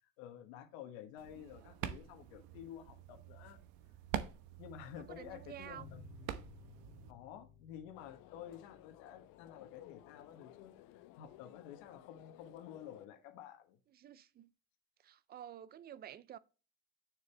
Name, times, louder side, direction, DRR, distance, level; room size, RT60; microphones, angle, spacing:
voice 1, 0.2-3.6 4.6-6.0 7.1-13.8, left 10 dB, 80° left, 1.4 m, -51 dB
sound 1, 1.2-7.1, right 10 dB, 70° right, 1.1 m, -46 dB
voice 2, 5.0-5.9 13.9-14.5 15.0-16.4, right 10 dB, 25° right, 0.4 m, -50 dB
sound 2, 5.8-10.9, left 9 dB, 40° left, 2.7 m, -60 dB
sound 3, 7.9-13.1, left 15 dB, 60° left, 0.9 m, -58 dB
6.9 x 6.6 x 3.3 m
cardioid pair, 150°, 38 cm